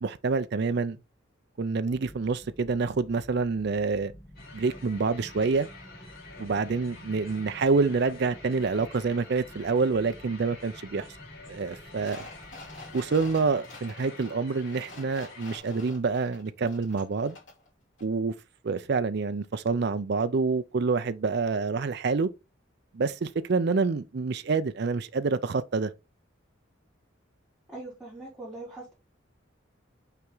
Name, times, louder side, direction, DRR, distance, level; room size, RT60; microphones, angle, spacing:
voice 1, 0.0-1.0 1.6-4.1 4.5-5.7 6.4-11.1 11.5-12.3 12.9-17.4 18.0-18.3 18.6-22.3 22.9-25.9, right 4 dB, 55° right, 0.5 m, -27 dB
sound 1, 1.9-13.5, equal, 20° left, 1.3 m, -51 dB
sound 2, 4.3-15.6, left 3 dB, 50° left, 2.7 m, -48 dB
sound 3, 12.0-17.7 18.0-18.1, left 2 dB, 65° left, 2.5 m, -48 dB
voice 2, 27.7-28.9, right 2 dB, 5° right, 3.4 m, -41 dB
5.8 x 4.5 x 3.9 m
head